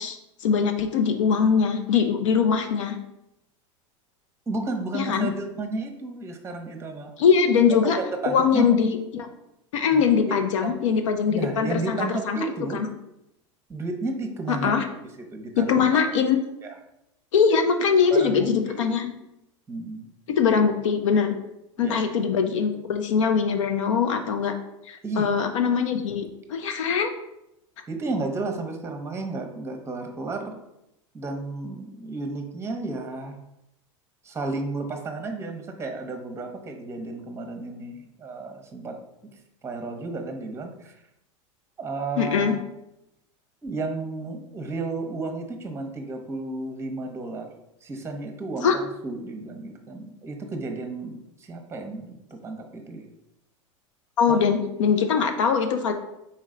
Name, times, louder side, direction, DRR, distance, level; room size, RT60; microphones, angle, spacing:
voice 1, 0.0-3.0 4.9-5.3 7.2-8.0 8.3-9.3 9.7-12.4 12.7-12.9 14.6-14.8 15.7-16.4 17.3-19.1 20.3-21.4 21.8-24.5 24.9-27.1 42.2-42.5 48.6-48.8 54.2-55.9, left 6 dB, 80° left, 7 dB, 0.6 m, -22 dB
voice 2, 4.5-7.1 7.8-8.7 9.9-10.0 10.3-10.8 11.3-12.8 13.7-14.8 15.2-16.0 16.6-16.8 18.1-18.9 19.7-20.1 21.8-22.0 25.0-25.3 27.9-30.6 31.1-33.4 34.2-39.0 39.6-41.0 41.8-42.6 43.6-47.5 47.8-53.1 54.3-54.4, right 3 dB, 15° right, 5 dB, 0.8 m, -33 dB
4.3 x 3.1 x 3.7 m, 0.85 s
hypercardioid pair, 100°, 16 cm